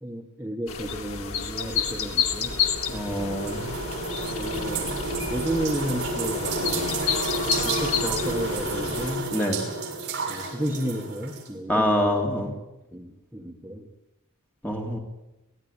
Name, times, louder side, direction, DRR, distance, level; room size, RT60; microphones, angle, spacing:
voice 1, 0.0-2.6 4.1-7.0 7.6-9.3 10.3-12.2 12.9-13.9, right 1 dB, 10° right, 0 dB, 1.7 m, -33 dB
sound 1, 0.7-9.2, left 6 dB, 75° left, 2.5 m, -30 dB
sound 2, 1.9-11.5, right 3 dB, 50° right, 6.6 m, -31 dB
voice 2, 2.9-3.8 9.3-9.6 11.7-12.5 14.6-15.0, left 1 dB, 5° left, 1 dB, 2.9 m, -25 dB
24.5 x 17.5 x 8.9 m, 0.93 s
head